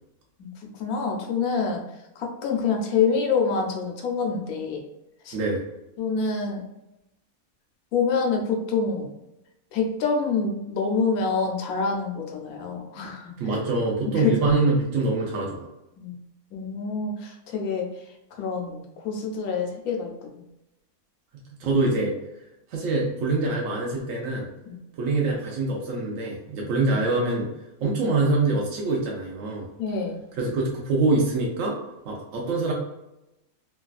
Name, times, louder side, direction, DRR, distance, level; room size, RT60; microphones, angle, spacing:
voice 1, 0.4-1.8 2.2-4.8 5.2-5.4 6.0-6.6 7.9-9.1 9.7-13.3 14.2-14.3 16.0-16.2 16.5-17.9 18.3-20.4 24.7-24.8 29.8-30.2, left 5 dB, 85° left, 1 dB, 1.1 m, -26 dB
voice 2, 5.3-5.6 13.4-15.7 21.6-22.1 22.7-24.5 25.0-27.5 27.8-29.7 30.4-31.8 32.0-32.7, right 3 dB, 70° right, -2 dB, 1.0 m, -24 dB
3.1 x 2.3 x 2.3 m, 0.91 s
omnidirectional pair, 1.5 m